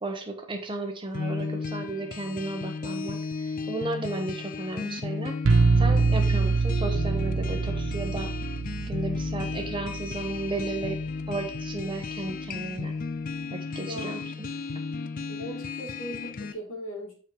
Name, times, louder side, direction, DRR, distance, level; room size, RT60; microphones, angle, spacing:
voice 1, 0.0-3.2 3.5-8.3 8.9-11.0 11.3-12.9 13.5-14.5, right 2 dB, 25° right, 4 dB, 1.0 m, -34 dB
sound 1, 1.1-16.5, left 4 dB, 40° left, 0.4 m, -34 dB
sound 2, 5.4-11.2, right 4 dB, 65° right, 0.5 m, -25 dB
voice 2, 13.8-14.2 15.3-17.1, equal, 80° left, -1 dB, 2.5 m, -38 dB
6.4 x 4.5 x 4.6 m, 0.41 s
head